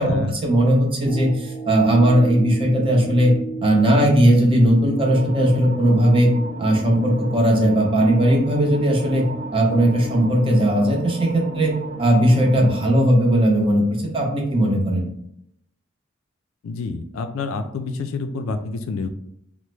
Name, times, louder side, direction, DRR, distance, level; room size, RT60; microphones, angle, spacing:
voice 1, 0.0-3.3 3.6-6.3 6.6-9.2 9.5-11.7 12.0-15.1, right 1 dB, 25° right, 0 dB, 0.6 m, -18 dB
sound 1, 1.1-9.5 10.0-10.1, right 5 dB, 25° left, 0.5 m, -36 dB
sound 2, 5.0-12.9, right 1 dB, 75° right, 0.5 m, -35 dB
voice 2, 16.6-19.1, left 4 dB, 80° left, 8 dB, 0.3 m, -28 dB
2.9 x 2.0 x 3.2 m, 0.74 s
head